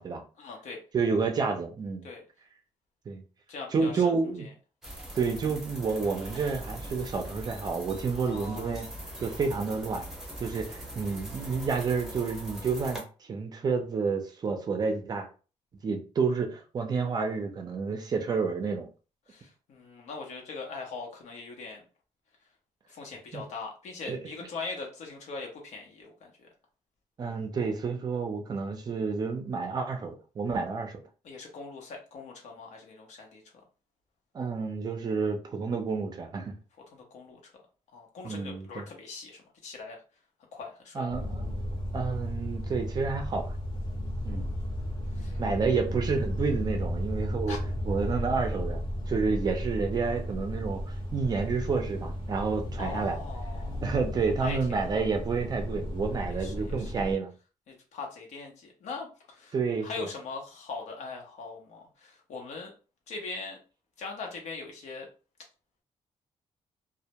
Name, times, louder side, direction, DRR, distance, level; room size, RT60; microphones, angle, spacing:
voice 1, 0.4-0.8 2.0-2.2 3.5-4.0 8.1-8.9 19.3-21.8 22.9-26.5 31.2-33.4 36.9-37.5 37.9-40.0 40.5-41.1 44.3-44.5 45.1-45.4 47.5-47.6 52.8-53.8 54.4-55.0 56.3-56.9 57.7-59.5 59.8-62.7 63.1-63.6 64.0-65.1, left 4 dB, 75° left, 0.8 m, -41 dB
voice 2, 0.9-2.1 3.1-3.2 3.7-4.5 5.2-8.9 9.2-10.0 10.4-13.0 13.3-15.3 15.8-18.9 23.3-23.4 24.1-24.2 27.2-31.0 34.3-36.5 38.2-38.9 40.9-41.5 41.9-43.5 44.2-44.5 45.4-47.6 47.8-48.8 49.1-53.2 53.8-57.3 59.5-60.1, right 4 dB, 35° right, 0.4 m, -30 dB
sound 1, 4.8-13.0, right 1 dB, 5° right, 0.7 m, -41 dB
sound 2, 41.1-57.1, equal, 40° left, 0.8 m, -34 dB
2.1 x 2.1 x 2.8 m
wide cardioid pair, 165°, 12 cm